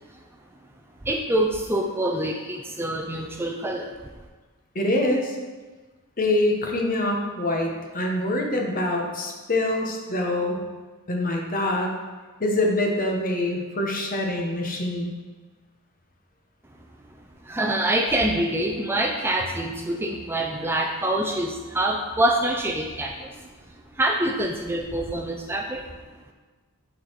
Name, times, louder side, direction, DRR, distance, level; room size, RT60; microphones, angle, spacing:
voice 1, 1.0-3.9 17.4-23.4 23.9-25.9, right 1 dB, 10° right, 2 dB, 0.4 m, -25 dB
voice 2, 4.7-5.4 6.2-10.6 11.1-11.9 12.4-15.1, left 1 dB, 40° left, 1 dB, 1.1 m, -25 dB
9.1 x 4.0 x 4.7 m, 1.3 s
head